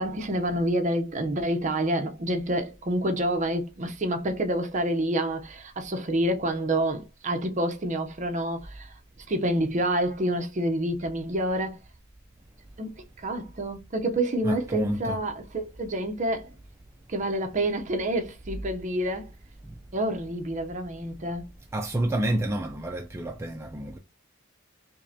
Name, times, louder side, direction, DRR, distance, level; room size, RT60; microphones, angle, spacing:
voice 1, 0.0-9.0 9.3-11.8 12.8-16.5 17.1-19.3 19.9-21.5, right 1 dB, 40° right, 0.7 m, -28 dB
voice 2, 14.4-15.2 21.7-24.0, right 1 dB, 15° right, 0.3 m, -29 dB
5.2 x 2.1 x 2.7 m
head